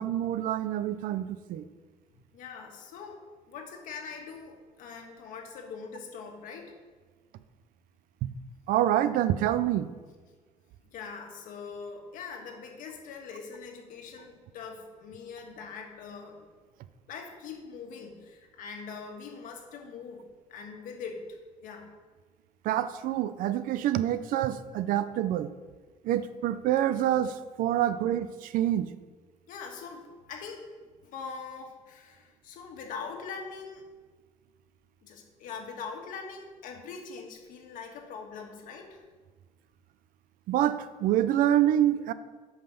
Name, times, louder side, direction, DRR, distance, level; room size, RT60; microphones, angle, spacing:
voice 1, 0.0-1.7 8.2-8.3 8.7-9.9 22.6-25.5 26.0-28.9 40.5-42.1, right 12 dB, 80° right, 13 dB, 0.5 m, -26 dB
voice 2, 2.3-6.7 10.8-16.5 17.1-21.9 29.5-30.7 31.0-33.8 35.0-39.0, left 5 dB, 75° left, 3 dB, 1.5 m, -42 dB
8.7 x 5.6 x 5.8 m, 1.4 s
cardioid pair, 170°, 14 cm